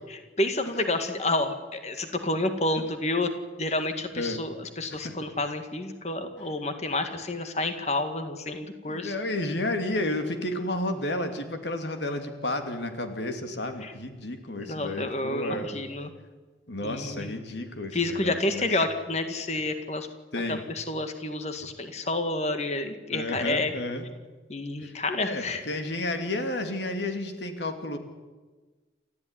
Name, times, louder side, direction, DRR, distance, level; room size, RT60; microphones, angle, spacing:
voice 1, 0.1-3.3 3.6-9.1 13.8-13.9 14.6-16.1 16.8-17.3 17.9-20.1 20.5-23.7 24.5-25.6, left 2 dB, 40° left, 7 dB, 2.0 m, -29 dB
voice 2, 8.9-15.8 16.7-18.8 20.3-20.6 23.1-24.0 24.8-28.0, left 1 dB, 80° left, 6 dB, 2.7 m, -32 dB
29.0 x 14.0 x 9.9 m, 1.3 s
head